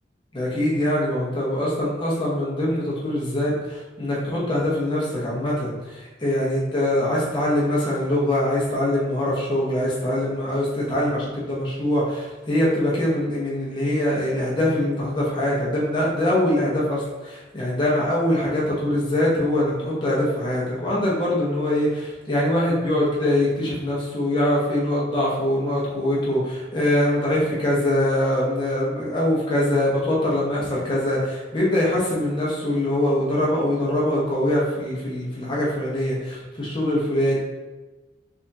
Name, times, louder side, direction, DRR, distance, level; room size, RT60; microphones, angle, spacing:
voice 1, 0.3-37.4, left 1 dB, 25° left, -5 dB, 1.0 m, -23 dB
3.5 x 3.4 x 2.7 m, 1.2 s
head